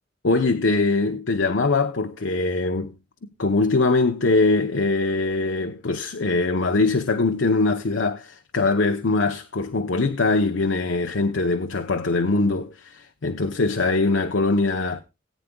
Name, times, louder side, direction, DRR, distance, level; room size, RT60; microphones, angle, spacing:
voice 1, 0.2-2.9 3.4-15.0, left 3 dB, 75° left, 0.8 m, -22 dB
18.5 x 9.1 x 2.3 m
head